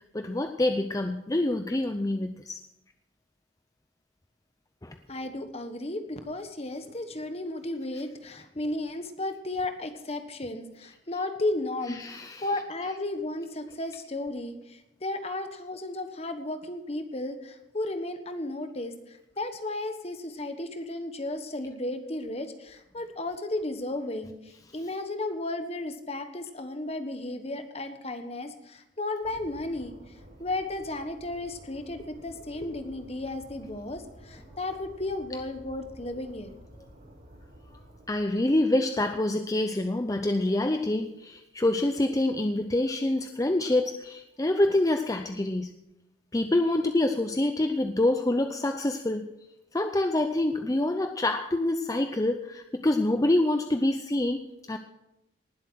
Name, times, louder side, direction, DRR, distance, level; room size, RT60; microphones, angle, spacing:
voice 1, 0.1-2.6 4.8-5.0 11.9-12.4 38.1-45.7 46.3-49.3 49.7-54.4 54.7-54.8, left 1 dB, 20° left, 7 dB, 0.6 m, -26 dB
voice 2, 5.1-29.9 30.4-36.5, left 2 dB, 35° left, 8 dB, 1.3 m, -34 dB
sound 1, 29.2-38.4, equal, 60° right, 5.6 m, -51 dB
19.0 x 8.0 x 6.2 m, 0.90 s
head